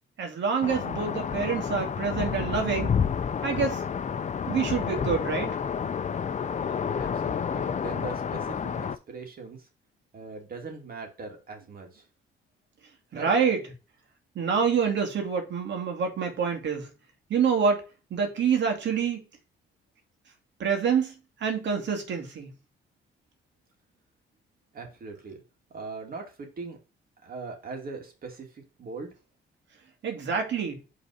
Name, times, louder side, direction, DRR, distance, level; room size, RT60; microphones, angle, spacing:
voice 1, 0.2-2.9 3.4-3.8 4.5-5.5 13.1-13.6 14.4-16.9 17.3-17.8 18.1-19.2 20.6-21.1 21.4-22.5 30.0-30.8, right 6 dB, 65° right, 2.2 m, -26 dB
sound 1, 0.6-9.0, left 7 dB, 35° left, 0.6 m, -30 dB
voice 2, 7.0-9.7 10.1-12.1 13.1-13.3 24.7-25.4 25.7-26.8 27.2-29.1, right 4 dB, 45° right, 2.5 m, -40 dB
5.5 x 4.0 x 4.8 m
cardioid pair, 90°, 20 cm